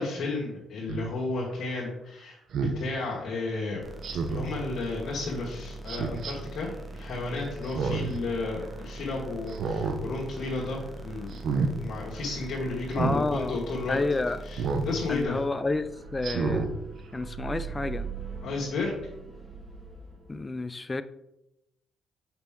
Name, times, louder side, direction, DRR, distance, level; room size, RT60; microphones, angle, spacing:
voice 1, 0.0-3.8 4.3-6.7 6.9-14.0 14.4-15.4 18.4-18.9, left 3 dB, 60° left, -5 dB, 1.5 m, -33 dB
Speech synthesizer, 0.9-1.1 2.5-2.8 4.0-4.5 5.9-6.3 7.6-8.2 8.6-8.7 9.5-10.0 10.4-10.7 11.3-11.7 12.9-13.2 14.6-14.9 15.4-15.5 16.2-16.7 17.2-17.3, right 4 dB, 65° right, 0.8 m, -29 dB
sound 1, 3.8-15.2, right 2 dB, 10° right, 1.1 m, -42 dB
voice 2, 13.0-13.6 13.9-14.4 15.1-16.7 17.1-18.1 20.3-21.0, left 3 dB, 20° left, 12 dB, 0.4 m, -30 dB
sound 2, 15.3-20.4, right 6 dB, 25° right, 2.4 m, -41 dB
5.9 x 5.6 x 3.7 m, 0.87 s
cardioid pair, 90°, 0 cm